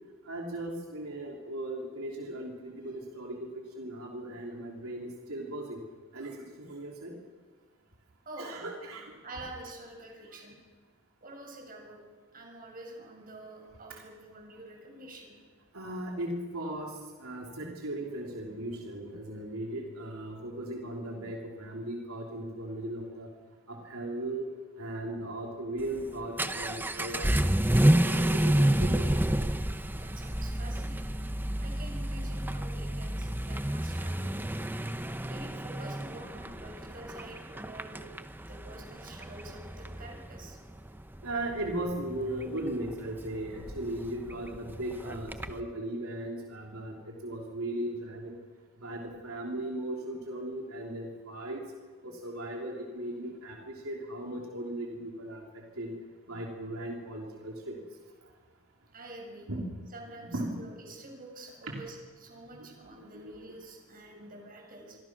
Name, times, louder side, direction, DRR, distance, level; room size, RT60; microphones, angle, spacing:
voice 1, 0.3-3.5 3.7-5.8 6.1-7.1 8.4-9.1 13.9-14.0 15.7-23.3 23.7-24.4 24.8-27.5 27.8-29.1 41.2-46.9 47.2-48.4 48.8-51.6 52.0-55.4 55.8-55.9 56.3-57.8 59.5-59.6 60.2-60.5 61.6-61.7 63.1-63.4 64.1-64.2, right 1 dB, 85° right, 0 dB, 3.3 m, -37 dB
voice 2, 9.2-10.6 11.2-12.0 12.3-15.4 30.0-31.2 31.6-34.5 35.3-38.0 38.5-40.6 58.9-59.5 59.9-65.0, right 2 dB, 45° right, 1 dB, 6.8 m, -47 dB
Vehicle / Accelerating revving vroom, 25.8-45.6, right 1 dB, 10° right, 0.9 m, -30 dB
27.5 x 24.0 x 6.2 m, 1.5 s
head